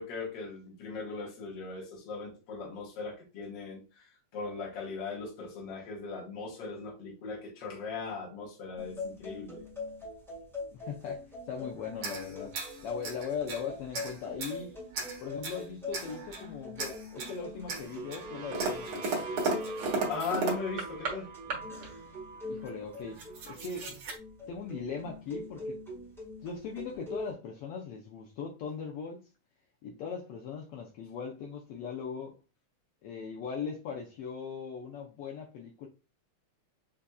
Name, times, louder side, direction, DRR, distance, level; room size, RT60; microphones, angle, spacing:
voice 1, 0.0-9.6 19.7-19.8 20.1-21.3, left 4 dB, 55° left, 1.4 m, -39 dB
sound 1, 8.8-27.3, left 2 dB, ahead, 0.8 m, -43 dB
voice 2, 10.7-12.5 12.8-14.8 15.2-19.3 22.4-23.9 24.5-25.8 26.4-29.3 29.8-32.4 33.0-35.9, left 6 dB, 80° left, 1.3 m, -39 dB
sound 2, 11.9-13.6 13.9-14.6 14.9-15.6 15.9-16.5 16.8-17.4 17.7-21.2 21.5-21.9 22.6-22.7 22.9-24.2, right 3 dB, 55° right, 1.8 m, -35 dB
sound 3, 17.5-23.4, right 4 dB, 70° right, 1.5 m, -46 dB
6.8 x 2.6 x 2.3 m
omnidirectional pair, 3.4 m